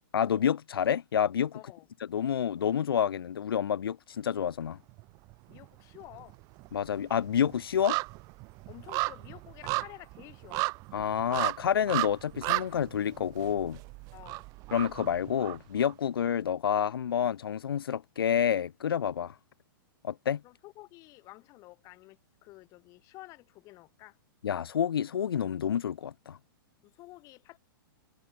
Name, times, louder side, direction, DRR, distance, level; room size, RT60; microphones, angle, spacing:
voice 1, 0.1-1.5 2.1-4.8 6.7-8.0 10.9-13.8 14.7-19.3 20.0-20.4 24.4-26.4, left 8 dB, 90° left, 1.8 m, -29 dB
voice 2, 1.5-1.9 5.5-6.4 8.7-10.7 14.1-14.5 20.4-24.2 26.8-27.6, left 20 dB, 25° left, 3.5 m, -51 dB
sound 1, 4.9-5.7 5.9-15.9 16.3-16.4, right 25 dB, 30° right, 3.2 m, -35 dB
hypercardioid pair, 160°, 12 cm